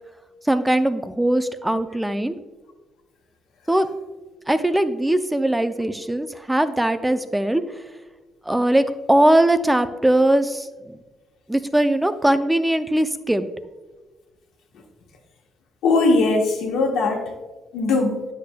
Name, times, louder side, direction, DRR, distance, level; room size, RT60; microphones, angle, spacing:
voice 1, 0.5-2.4 3.7-3.9 4.5-7.6 8.5-10.7 11.5-13.5, right 1 dB, 10° right, 10 dB, 0.5 m, -20 dB
voice 2, 15.8-17.3 17.7-18.2, left 3 dB, 85° left, 1 dB, 1.4 m, -20 dB
9.8 x 6.7 x 2.3 m, 1.2 s
cardioid pair, 90°, 0 cm